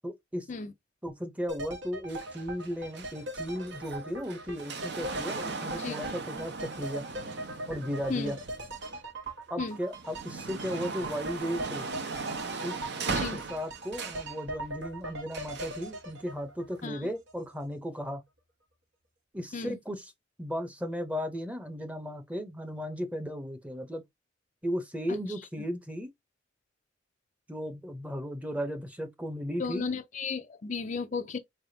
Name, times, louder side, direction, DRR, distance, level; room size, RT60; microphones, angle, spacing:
voice 1, 0.0-0.5 1.0-7.0 7.7-8.4 9.5-11.9 12.6-18.2 19.3-20.1 20.4-24.0 24.6-26.1 27.5-29.9, equal, 5° right, 0.7 m, -35 dB
sound 1, 1.5-17.4 17.7-17.8, right 1 dB, 75° right, 1.4 m, -41 dB
sound 2, 2.1-9.3 9.8-14.3 15.3-15.9 16.8-16.9, right 4 dB, 60° right, 0.8 m, -38 dB
voice 2, 13.1-13.4 16.8-17.1 19.5-19.8 25.1-25.2 29.6-31.4, left 4 dB, 40° left, 0.4 m, -34 dB
4.3 x 3.4 x 2.7 m
head